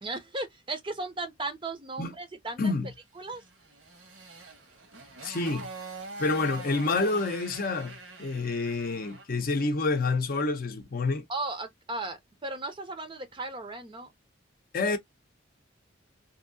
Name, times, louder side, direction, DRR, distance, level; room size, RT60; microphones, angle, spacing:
voice 1, 0.0-2.6 3.2-3.4 11.3-14.1, right 2 dB, 25° right, 0.6 m, -36 dB
voice 2, 2.6-2.9 5.2-5.7 6.2-11.2 14.7-15.0, left 3 dB, 45° left, 0.6 m, -28 dB
Motorcycle, 3.3-9.4, right 3 dB, 80° right, 1.1 m, -44 dB
2.8 x 2.6 x 2.6 m
head